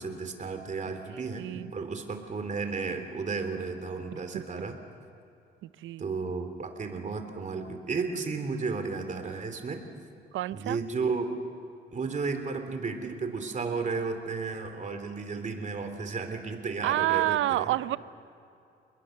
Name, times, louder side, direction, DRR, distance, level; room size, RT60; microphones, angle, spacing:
voice 1, 0.0-4.8 6.0-9.8 10.5-11.3 11.9-17.8, right 4 dB, 40° right, 7 dB, 3.4 m, -33 dB
voice 2, 1.4-1.7 4.1-4.4 5.6-6.1 10.3-10.8 16.8-18.0, right 14 dB, 80° right, 16 dB, 0.7 m, -29 dB
29.0 x 21.0 x 6.7 m, 2.6 s
cardioid pair, 90°, 20 cm